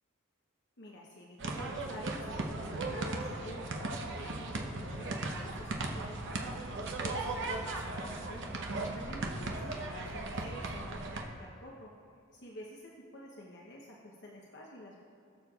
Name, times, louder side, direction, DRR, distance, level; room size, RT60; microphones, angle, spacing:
voice 1, 0.8-11.9 12.3-15.0, equal, 60° left, -3 dB, 0.9 m, -49 dB
sound 1, 1.4-11.2, right 2 dB, 60° right, 0.8 m, -37 dB
20.0 x 6.9 x 2.4 m, 2.5 s
head